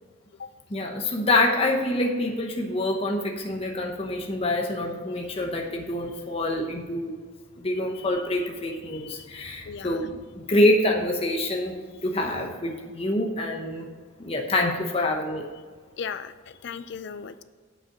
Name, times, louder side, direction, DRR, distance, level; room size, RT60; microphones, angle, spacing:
voice 1, 0.7-7.1 7.6-13.9 14.2-15.5, left 1 dB, 30° left, 1 dB, 0.9 m, -26 dB
voice 2, 8.9-10.0 16.0-17.4, left 6 dB, 55° left, 13 dB, 0.4 m, -38 dB
7.3 x 5.7 x 5.8 m, 1.6 s
head